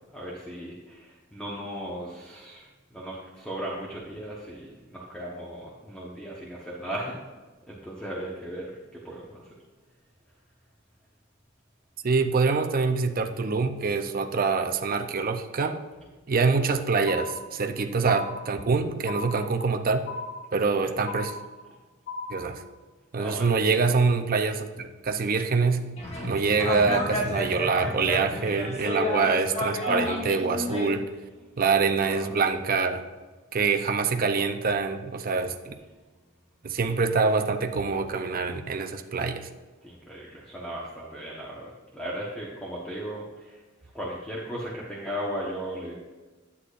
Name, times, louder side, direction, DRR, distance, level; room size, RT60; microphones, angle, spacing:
voice 1, 0.1-7.2 7.7-9.5 20.6-20.9 23.2-23.5 32.0-32.3 39.8-43.6 43.9-45.9, equal, 5° left, -6 dB, 1.1 m, -37 dB
voice 2, 12.0-15.8 16.3-20.1 20.5-21.4 22.3-22.6 23.1-25.9 26.2-31.1 31.6-33.0 33.5-35.7 36.6-39.5, right 4 dB, 45° right, 6 dB, 0.6 m, -25 dB
sound 1, 17.1-17.7 18.1-18.7 19.1-19.7 20.1-20.7 21.1-21.7 22.1-22.7, left 3 dB, 65° left, 2.2 m, -37 dB
sound 2, 26.0-30.9, left 1 dB, 30° left, 1.2 m, -30 dB
10.5 x 8.3 x 2.5 m, 1.3 s
head